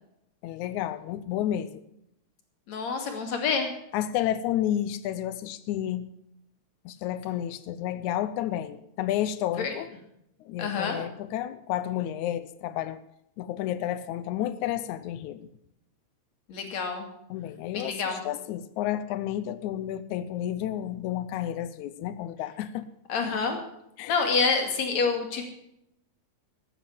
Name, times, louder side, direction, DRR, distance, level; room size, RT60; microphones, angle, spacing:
voice 1, 0.4-1.8 3.9-6.1 6.9-9.9 10.4-13.0 13.4-15.5 17.3-22.9 24.0-24.2, left 12 dB, 90° left, 13 dB, 2.1 m, -31 dB
voice 2, 2.7-3.7 9.6-9.7 10.6-11.0 16.5-17.0 17.7-18.2 23.1-23.6 24.1-25.4, left 5 dB, 70° left, 4 dB, 3.5 m, -27 dB
14.5 x 9.7 x 7.2 m, 0.78 s
omnidirectional pair, 3.3 m